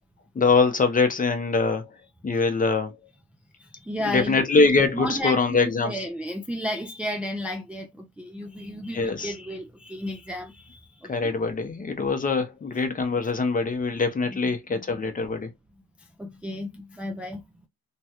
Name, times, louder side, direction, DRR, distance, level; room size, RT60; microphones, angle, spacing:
voice 1, 0.3-1.9 2.2-2.9 4.0-6.0 8.9-9.3 11.1-15.5, left 4 dB, 25° left, 0.7 m, -23 dB
voice 2, 3.6-4.5 4.9-11.3 14.3-14.4 14.7-14.8 16.0-17.4, left 1 dB, 5° right, 0.4 m, -33 dB
3.1 x 2.3 x 2.8 m
cardioid pair, 90°, 30 cm